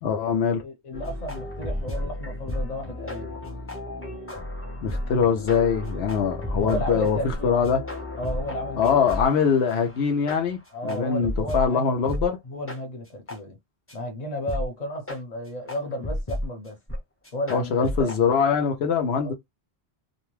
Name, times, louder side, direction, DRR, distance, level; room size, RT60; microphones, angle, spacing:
voice 1, 0.0-0.6 4.8-7.8 8.8-12.4 17.5-19.3, left 6 dB, 80° left, 0.8 m, -23 dB
voice 2, 0.6-3.4 6.6-7.7 8.2-9.2 10.7-11.9 12.4-13.6 13.9-16.8 17.3-18.3 19.2-19.3, left 1 dB, 40° left, 1.0 m, -33 dB
sound 1, 0.9-11.7 12.1-12.3 12.7-12.8 13.3-13.4 13.9-14.0 14.5-14.7 15.1-15.2 15.7-16.5 16.9-17.0 17.2-18.2, left 1 dB, 15° left, 0.5 m, -33 dB
2.4 x 2.2 x 3.1 m
omnidirectional pair, 1.1 m